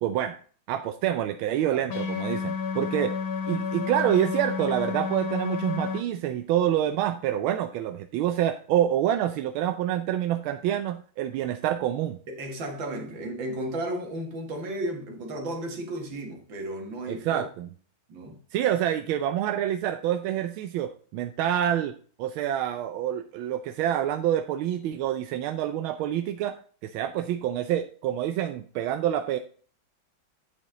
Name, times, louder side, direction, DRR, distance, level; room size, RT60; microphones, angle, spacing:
voice 1, 0.0-0.4 0.7-3.1 3.5-12.2 17.1-17.7 18.5-21.9 22.2-26.6 26.8-29.4, right 11 dB, 90° right, 1.4 m, -27 dB
sound 1, 1.9-6.0, left 6 dB, 90° left, 2.0 m, -30 dB
voice 2, 12.3-17.4 18.1-18.4, right 1 dB, 70° right, 2.4 m, -34 dB
9.6 x 5.3 x 3.8 m
omnidirectional pair, 2.2 m